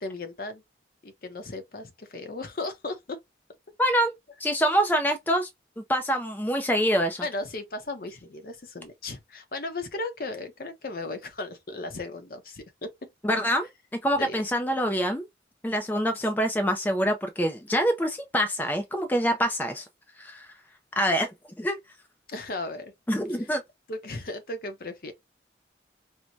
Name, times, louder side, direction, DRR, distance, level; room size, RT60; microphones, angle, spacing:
voice 1, 0.0-0.6 1.0-3.2 7.2-12.9 14.2-14.4 22.3-22.9 23.4-23.5 23.9-25.1, left 2 dB, 55° left, 0.7 m, -36 dB
voice 2, 3.8-4.1 4.4-5.5 5.9-7.2 13.2-15.3 15.6-19.8 20.2-20.5 21.0-21.8 23.1-23.6, equal, 10° left, 0.3 m, -25 dB
4.4 x 2.1 x 2.5 m
head